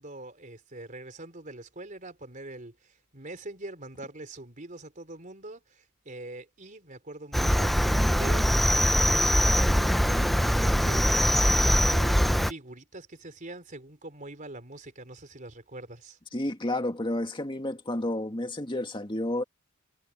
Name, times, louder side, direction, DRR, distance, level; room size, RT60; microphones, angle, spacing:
voice 1, 0.0-7.7 8.1-9.6 10.1-16.2, right 2 dB, 35° right, 4.2 m, -43 dB
Cricket, 7.3-12.5, equal, ahead, 0.6 m, -22 dB
voice 2, 16.3-19.4, left 1 dB, 20° left, 2.2 m, -31 dB
head